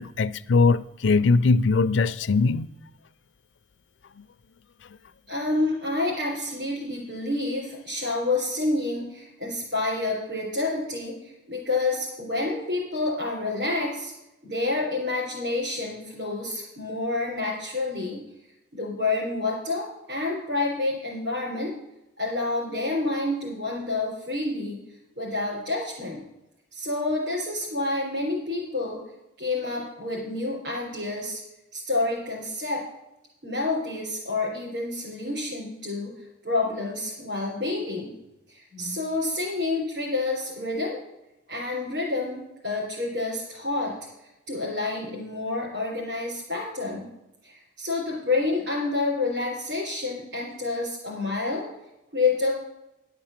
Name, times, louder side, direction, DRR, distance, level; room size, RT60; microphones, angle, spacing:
voice 1, 0.0-2.7, left 4 dB, 70° left, 0.5 m, -21 dB
voice 2, 5.3-14.1 14.4-18.2 18.7-21.7 22.2-24.8 25.2-26.2 26.7-29.0 29.4-31.4 31.7-32.8 33.4-36.2 36.4-38.1 38.5-41.0 41.5-43.9 44.5-47.1 47.4-51.7 52.1-52.5, left 2 dB, 60° right, 3.9 m, -28 dB
11.5 x 6.1 x 7.3 m
head